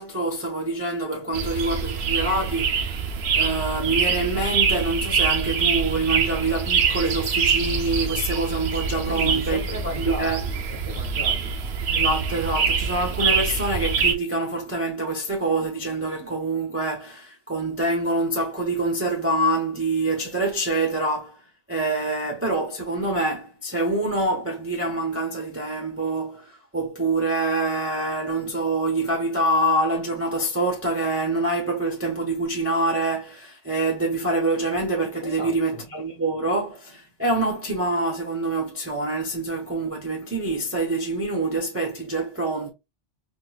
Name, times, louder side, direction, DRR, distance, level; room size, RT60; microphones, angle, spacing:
voice 1, 0.0-2.9 3.4-10.4 11.9-21.4 21.7-42.7, right 2 dB, 15° right, 0.7 m, -26 dB
sound 1, 1.3-14.1, right 6 dB, 65° right, 0.9 m, -24 dB
voice 2, 9.0-11.5 35.2-35.8, left 2 dB, 25° left, 1.3 m, -36 dB
4.3 x 2.5 x 2.3 m
omnidirectional pair, 1.2 m